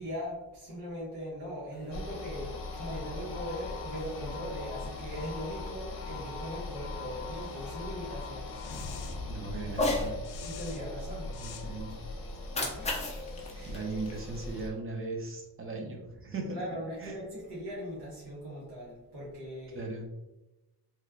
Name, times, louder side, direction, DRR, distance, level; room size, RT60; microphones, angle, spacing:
voice 1, 0.0-8.6 10.4-11.3 12.5-13.0 13.5-13.8 16.5-19.9, equal, 90° right, -7 dB, 1.2 m, -40 dB
sound 1, 1.7-14.1, left 4 dB, 75° left, 0.5 m, -46 dB
sound 2, 1.9-14.7, left 2 dB, 55° left, 0.9 m, -41 dB
voice 2, 9.3-10.1 11.4-12.0 13.7-16.6 17.0-17.2 19.7-20.1, right 3 dB, 35° right, 1 dB, 0.6 m, -38 dB
Cat, 9.7-10.1 12.3-14.7, left 2 dB, 15° left, 0.5 m, -34 dB
3.1 x 2.2 x 3.5 m, 1.0 s
wide cardioid pair, 145°, 40 cm